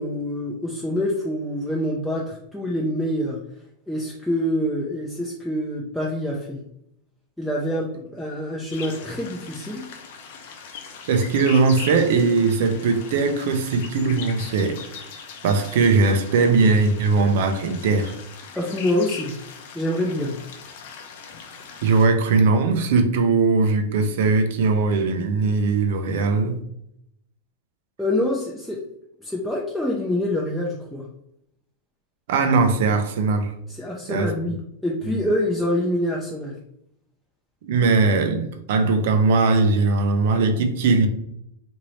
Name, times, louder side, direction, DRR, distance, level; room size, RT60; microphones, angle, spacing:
voice 1, 0.0-3.4 3.9-6.6 7.4-9.8 18.6-19.3 19.7-20.3 28.0-28.8 29.2-31.1 33.7-36.5, left 1 dB, ahead, 0.5 m, -26 dB
sound 1, 8.7-22.1, left 6 dB, 65° left, 0.6 m, -40 dB
voice 2, 11.1-14.8 15.4-18.1 21.8-26.6 32.3-33.5 34.1-34.3 35.0-35.3 37.6-41.1, right 4 dB, 70° right, 0.5 m, -20 dB
3.0 x 2.6 x 3.0 m
supercardioid pair, 130°, 0 cm